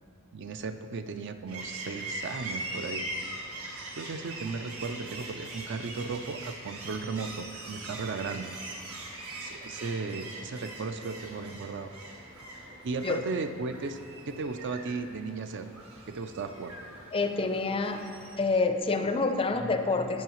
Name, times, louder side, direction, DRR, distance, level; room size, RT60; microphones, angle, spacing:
voice 1, 0.3-3.1 4.0-8.6 9.4-11.9 12.8-14.0 14.3-15.7 16.1-16.8, right 4 dB, 55° right, 8 dB, 0.4 m, -36 dB
sound 1, 1.5-18.4, right 2 dB, 80° right, 1.3 m, -42 dB
voice 2, 17.1-18.0 18.4-20.2, left 3 dB, 25° left, 7 dB, 0.4 m, -27 dB
16.5 x 5.6 x 3.0 m, 2.6 s
head